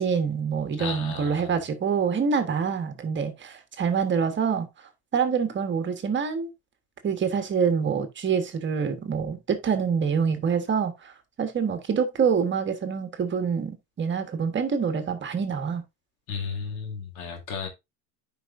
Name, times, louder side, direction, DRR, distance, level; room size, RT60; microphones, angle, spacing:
voice 1, 0.0-4.7 5.1-6.5 7.0-11.1 11.4-15.8, right 6 dB, 25° right, 1.3 m, -26 dB
voice 2, 0.8-1.5 16.3-17.7, left 5 dB, 85° left, 2.4 m, -34 dB
10.0 x 5.1 x 2.6 m
supercardioid pair, 115°, 41 cm